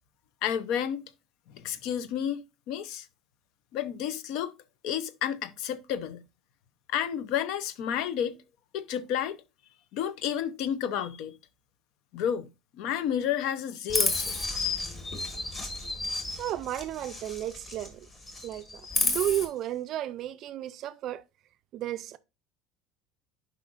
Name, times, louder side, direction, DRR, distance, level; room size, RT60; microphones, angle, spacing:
voice 1, 0.4-1.1 1.5-2.4 2.7-3.1 3.7-4.5 4.8-6.2 6.9-8.4 8.7-9.4 9.9-11.4 12.1-14.4, left 9 dB, 55° left, 0.7 m, -31 dB
Chirp tweet, 13.9-17.9 18.2-19.4, left 2 dB, 20° left, 1.5 m, -31 dB
voice 2, 16.4-18.1 18.4-21.2 21.7-22.2, right 13 dB, 40° right, 0.4 m, -33 dB
11.0 x 5.0 x 2.5 m
cardioid pair, 175°, 0 cm